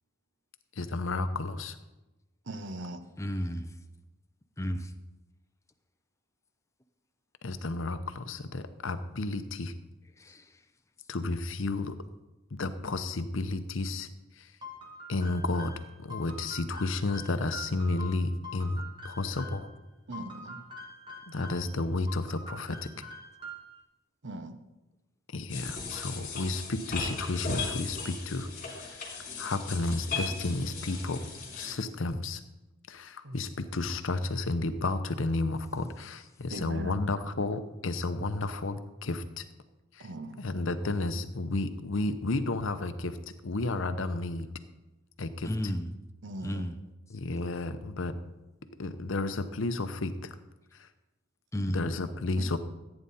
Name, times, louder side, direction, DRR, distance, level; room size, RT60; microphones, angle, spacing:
voice 1, 0.8-1.8 7.4-9.7 11.1-12.0 12.6-14.1 14.4-14.5 15.1-15.7 16.0-19.7 21.3-22.9 25.3-28.5 28.8-29.0 29.4-31.3 31.5-32.4 32.9-39.2 39.9-40.1 40.4-43.2 43.4-44.5 45.2-45.5 47.1-48.2 48.8-50.3 50.8-50.9 51.7-52.6, left 2 dB, 65° left, 0.8 m, -32 dB
voice 2, 2.5-3.0 20.1-20.6 24.2-24.6 33.2-33.4 36.5-37.3 40.0-40.4 46.2-46.7 52.4-52.6, right 1 dB, 55° right, 0.9 m, -40 dB
voice 3, 3.2-3.7 4.6-4.9 10.2-10.5 45.4-45.9 46.4-46.7 51.5-51.8, equal, 15° left, 0.6 m, -32 dB
sound 1, 14.6-19.7 20.1-21.7 22.1-23.8, left 1 dB, 25° right, 1.8 m, -45 dB
sound 2, 25.5-31.7, left 4 dB, 40° left, 3.1 m, -37 dB
14.5 x 9.0 x 4.2 m
head